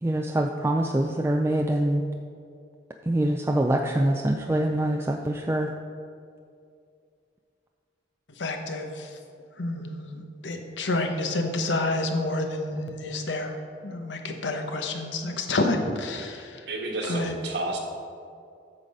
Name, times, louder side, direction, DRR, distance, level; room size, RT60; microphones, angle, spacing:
voice 1, 0.0-2.0 3.1-5.7, right 1 dB, 15° right, 2 dB, 0.4 m, -24 dB
voice 2, 8.4-9.2 9.6-13.5 13.8-16.6 17.1-17.3, left 2 dB, 75° left, 4 dB, 1.0 m, -29 dB
voice 3, 16.6-17.8, right 2 dB, 65° right, 0 dB, 1.5 m, -30 dB
8.8 x 6.4 x 5.4 m, 2.3 s
head